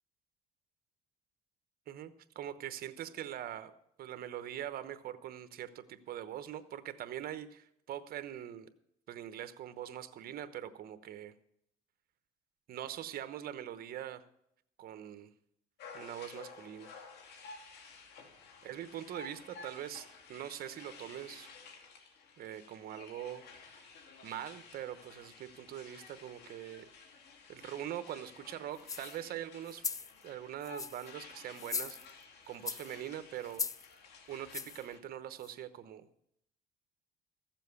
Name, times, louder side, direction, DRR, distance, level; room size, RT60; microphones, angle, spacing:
voice 1, 1.9-8.7 9.1-11.3 12.7-14.2 14.8-15.3 15.9-16.9 18.6-21.5 22.4-23.9 24.2-26.8 27.5-29.8 30.2-32.0 32.5-33.6 34.3-36.1, right 11 dB, 60° right, 11 dB, 1.0 m, -43 dB
sound 1, 15.8-35.0, left 4 dB, 80° left, 2.2 m, -53 dB
sound 2, 28.8-29.2 29.7-30.1 30.6-31.1 31.6-32.2 32.7-33.0 33.5-33.9 34.5-34.8 35.4-35.5, left 5 dB, 20° left, 0.4 m, -39 dB
15.0 x 7.4 x 7.0 m, 0.75 s
cardioid pair, 110°, 17 cm